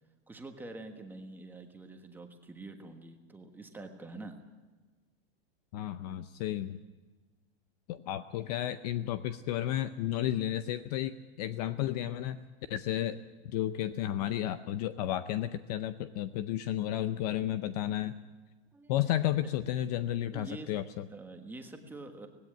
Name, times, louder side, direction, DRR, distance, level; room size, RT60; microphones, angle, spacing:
voice 1, 0.3-4.4 18.7-19.1 20.3-20.8 21.1-22.3, right 2 dB, 5° right, 5 dB, 1.4 m, -46 dB
voice 2, 5.7-6.8 7.9-12.4 12.7-13.2 13.4-18.2 18.9-21.1, left 12 dB, 35° left, 12 dB, 0.6 m, -32 dB
18.5 x 16.5 x 9.0 m, 1.3 s
supercardioid pair, 160°, 33 cm